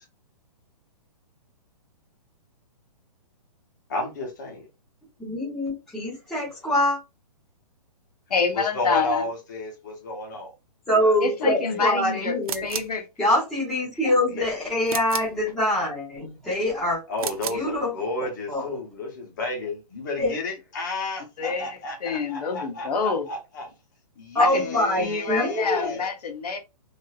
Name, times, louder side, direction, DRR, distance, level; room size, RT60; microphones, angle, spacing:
voice 1, 3.9-4.7 8.5-10.5 10.9-11.8 14.3-14.5 17.1-23.7 24.2-26.1, left 2 dB, 30° left, 0.8 m, -32 dB
voice 2, 5.2-7.0 10.9-12.7 13.2-17.0 17.4-17.9 18.5-18.7 20.2-20.3 24.3-25.9, left 1 dB, ahead, 0.6 m, -24 dB
voice 3, 8.3-9.3 11.2-12.4 12.6-13.0 14.0-14.1 21.4-23.3 24.5-24.6 25.0-26.6, left 5 dB, 70° left, 0.9 m, -27 dB
sound 1, 12.4-13.0 14.9-15.4 17.1-17.7, right 8 dB, 65° right, 0.4 m, -33 dB
3.2 x 2.6 x 2.3 m
hypercardioid pair, 180°, 21 cm